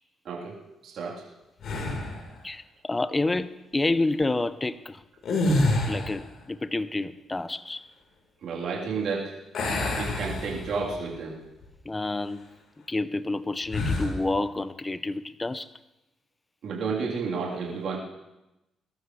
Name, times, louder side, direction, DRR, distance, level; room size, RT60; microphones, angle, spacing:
voice 1, 0.3-0.6 0.8-1.2 8.4-9.3 10.0-11.4 16.6-18.0, right 5 dB, 70° right, -5 dB, 3.5 m, -31 dB
sound 1, 1.6-2.3 5.2-6.3 9.5-11.0 11.5-11.7 13.7-14.2, left 2 dB, 65° left, 4.0 m, -27 dB
voice 2, 2.4-5.0 5.9-7.8 11.9-12.4 12.9-15.7, left 2 dB, 20° left, 14 dB, 0.6 m, -29 dB
21.5 x 13.0 x 3.2 m, 0.96 s
cardioid pair, 90°, 0 cm